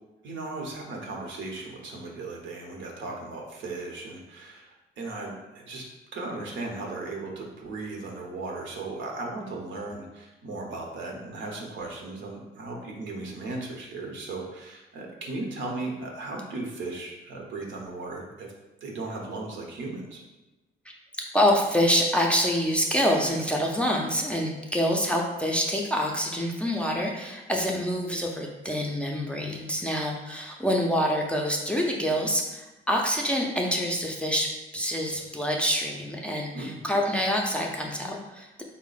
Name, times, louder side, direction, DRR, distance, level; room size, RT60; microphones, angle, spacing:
voice 1, 0.2-18.5 18.8-20.2 36.5-36.8, right 2 dB, 70° right, 0 dB, 0.8 m, -36 dB
voice 2, 21.3-34.5 34.7-38.6, equal, 5° left, -1 dB, 0.5 m, -26 dB
3.7 x 2.1 x 3.9 m, 1.1 s
cardioid pair, 90°, 20 cm